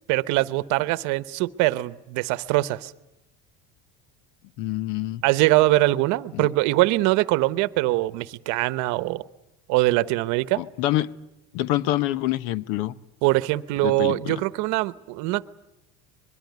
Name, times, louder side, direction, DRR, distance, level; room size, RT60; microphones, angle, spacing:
voice 1, 0.1-2.9 5.2-9.2 9.7-10.6 13.2-15.4, right 18 dB, 65° right, 15 dB, 1.0 m, -22 dB
voice 2, 4.6-5.2 6.3-6.5 10.6-11.1 11.5-12.9 13.8-14.4, left 15 dB, 70° left, 17 dB, 1.0 m, -26 dB
24.0 x 22.5 x 9.4 m, 0.90 s
cardioid pair, 150°, 32 cm